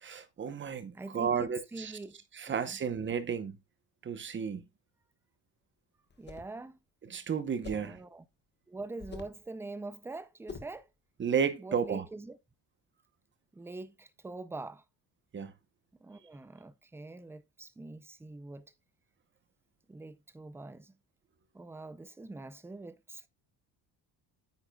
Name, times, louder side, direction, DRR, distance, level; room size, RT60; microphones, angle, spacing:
voice 1, 0.0-1.9 2.3-3.6 4.0-4.6 7.1-8.0 11.2-12.0 15.3-15.5, right 7 dB, 25° right, 0.8 m, -32 dB
voice 2, 0.9-2.2 2.4-2.5 6.2-6.8 7.7-8.2 8.7-10.9 11.6-12.4 13.5-14.8 16.0-18.7 19.9-20.9 21.5-23.3, right 2 dB, 5° right, 0.4 m, -44 dB
sound 1, 6.1-6.6 7.6-8.0 9.0-9.4 10.5-10.8, left 5 dB, 25° left, 1.2 m, -45 dB
9.4 x 8.7 x 2.3 m
cardioid pair, 160°, 44 cm